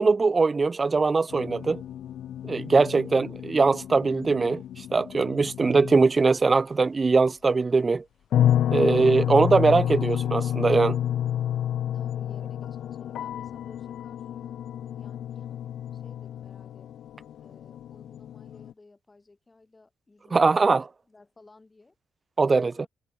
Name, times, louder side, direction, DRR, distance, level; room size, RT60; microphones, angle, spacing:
voice 1, 0.0-1.8 2.4-8.0 8.7-11.0 20.3-20.8 22.4-22.9, right 4 dB, 30° right, 0.4 m, -21 dB
sound 1, 1.3-6.1 8.3-18.7, left 10 dB, 70° left, 1.3 m, -30 dB
voice 2, 11.8-14.5 15.0-15.6 15.9-16.9 17.4-22.0 22.5-22.9, left 3 dB, 20° left, 6.3 m, -55 dB
cardioid pair, 90°, 0 cm